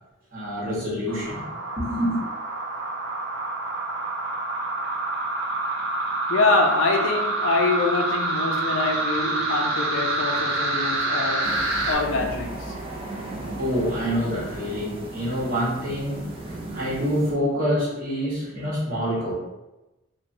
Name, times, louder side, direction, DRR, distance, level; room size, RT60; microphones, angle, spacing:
voice 1, 0.3-2.2 13.6-19.3, equal, 40° right, -7 dB, 1.0 m, -27 dB
sound 1, 1.1-12.0, right 2 dB, 75° right, 0.6 m, -27 dB
voice 2, 6.3-12.7, left 3 dB, 65° left, 2 dB, 0.4 m, -25 dB
sound 2, 11.4-17.3, right 1 dB, 25° right, 0.3 m, -36 dB
3.0 x 2.1 x 2.6 m, 0.98 s
head